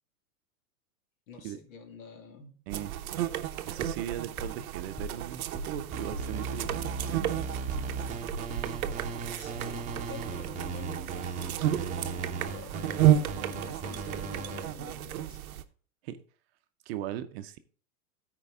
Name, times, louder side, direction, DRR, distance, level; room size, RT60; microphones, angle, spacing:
voice 1, 1.3-2.9 9.3-15.4, left 3 dB, 60° left, 4 dB, 2.1 m, -47 dB
sound 1, 2.7-15.6, right 12 dB, 75° right, 0.8 m, -32 dB
voice 2, 3.6-7.4 16.0-16.2 16.9-17.6, right 11 dB, 45° right, 10 dB, 0.7 m, -38 dB
sound 2, 3.8-4.1 4.4-4.6 5.0-5.2 5.5-5.8 6.1-6.4 6.6-7.4 7.7-8.0 8.3-8.6 8.8-9.1, right 2 dB, 15° left, 2.9 m, -39 dB
sound 3, 5.9-14.6, right 4 dB, 15° right, 0.9 m, -38 dB
13.5 x 4.7 x 3.5 m, 0.41 s
hypercardioid pair, 130°, 43 cm